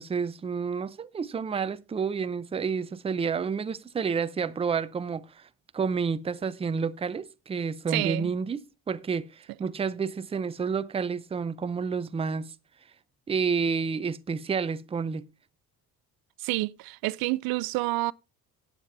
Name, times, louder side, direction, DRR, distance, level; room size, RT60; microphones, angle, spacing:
voice 1, 0.0-5.5 5.7-8.6 8.9-12.5 13.3-15.2, right 5 dB, 15° right, 0.5 m, -30 dB
voice 2, 7.9-8.3 16.4-18.1, right 20 dB, 80° right, 0.5 m, -28 dB
18.0 x 7.5 x 2.6 m
cardioid pair, 125°, 35 cm